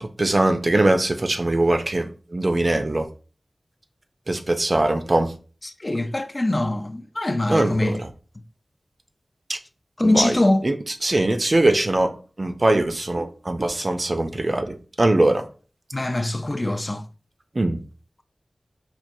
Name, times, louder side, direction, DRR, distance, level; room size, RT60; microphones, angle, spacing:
voice 1, 0.0-3.1 4.3-5.3 7.5-8.1 9.5-9.6 10.0-10.4 10.6-10.7 11.0-12.1 12.4-15.4 17.6-17.8, right 2 dB, 50° right, 0.5 m, -21 dB
voice 2, 5.6-8.0 10.0-10.6 15.9-17.0, left 1 dB, 35° left, 0.4 m, -23 dB
4.6 x 2.3 x 2.7 m
cardioid pair, 45°, 0 cm